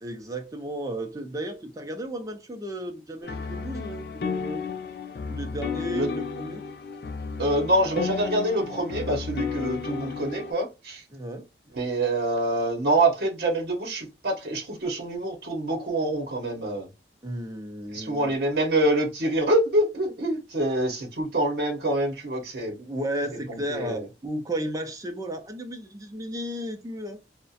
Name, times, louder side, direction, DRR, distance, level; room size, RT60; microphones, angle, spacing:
voice 1, 0.0-4.6 5.3-6.6 11.1-11.5 17.2-18.4 22.8-27.2, right 1 dB, 20° right, 0.4 m, -34 dB
sound 1, 3.2-10.5, left 5 dB, 60° left, 0.3 m, -33 dB
voice 2, 7.4-11.0 11.7-16.9 17.9-22.7 23.7-24.0, right 1 dB, 60° right, 0.7 m, -25 dB
2.3 x 2.1 x 2.6 m
head